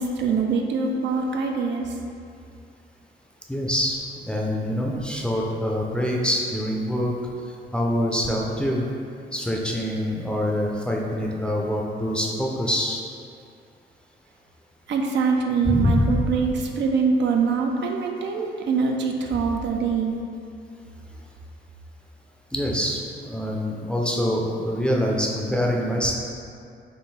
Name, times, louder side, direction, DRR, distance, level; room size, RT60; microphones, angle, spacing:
voice 1, 0.0-2.0 14.9-20.1, right 5 dB, 65° right, 2 dB, 0.4 m, -24 dB
voice 2, 3.5-4.0 4.3-7.1 7.7-8.8 9.3-13.0 15.7-16.2 22.5-26.1, equal, 5° left, -2 dB, 0.5 m, -25 dB
3.7 x 2.5 x 4.1 m, 2.4 s
cardioid pair, 90°, 20 cm